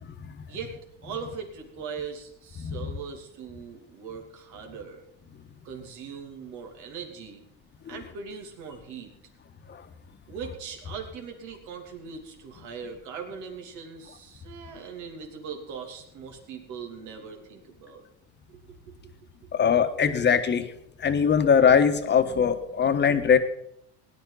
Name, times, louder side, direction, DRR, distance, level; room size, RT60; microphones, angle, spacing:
voice 1, 1.0-5.0 5.6-7.5 7.9-9.1 10.3-18.0 18.5-19.1, right 6 dB, 65° right, 3 dB, 3.0 m, -40 dB
voice 2, 19.5-20.7 21.0-23.4, left 7 dB, 35° left, 8 dB, 1.4 m, -21 dB
18.0 x 10.5 x 4.1 m, 0.72 s
supercardioid pair, 95°, 32 cm